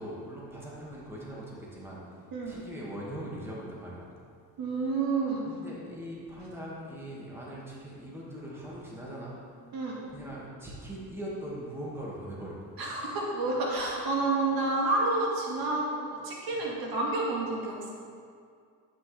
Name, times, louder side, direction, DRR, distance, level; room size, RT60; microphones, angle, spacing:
voice 1, 0.0-4.1 5.4-9.4 10.1-12.6, right 1 dB, 5° right, -6 dB, 2.1 m, -41 dB
voice 2, 4.6-5.5 9.7-10.0 12.8-17.9, right 2 dB, 60° right, -3 dB, 2.2 m, -29 dB
10.5 x 8.9 x 3.5 m, 2.2 s
cardioid pair, 125°, 40 cm